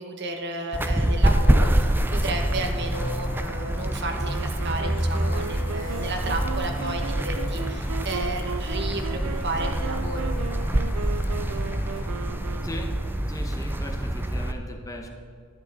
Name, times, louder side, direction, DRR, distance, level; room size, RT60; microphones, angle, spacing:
voice 1, 0.0-10.4, right 2 dB, 55° right, 3 dB, 1.2 m, -32 dB
sound 1, 0.7-14.5, right 1 dB, 10° right, 0.4 m, -26 dB
sound 2, 1.9-13.2, left 2 dB, 45° left, 0.9 m, -44 dB
Wind instrument woodwind instrument, 4.2-13.2, right 6 dB, 85° right, 0.4 m, -37 dB
voice 2, 12.6-12.9 13.3-15.1, left 1 dB, 15° left, 2 dB, 1.0 m, -38 dB
12.0 x 10.5 x 4.0 m, 2.3 s
head